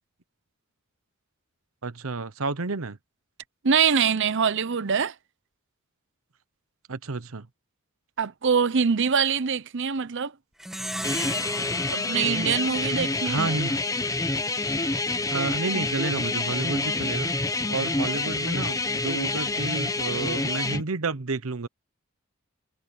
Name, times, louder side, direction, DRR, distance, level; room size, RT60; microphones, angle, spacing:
voice 1, 1.8-3.0 6.9-7.5 13.2-13.8 15.3-17.3 17.7-21.7, right 3 dB, 90° right, 1.0 m, -30 dB
voice 2, 3.6-5.1 8.2-10.3 11.9-13.4, right 6 dB, 60° right, 0.8 m, -24 dB
Plucked string instrument, 10.6-13.4, equal, ahead, 2.1 m, -36 dB
sound 1, 11.0-20.8, left 2 dB, 15° left, 0.9 m, -27 dB
head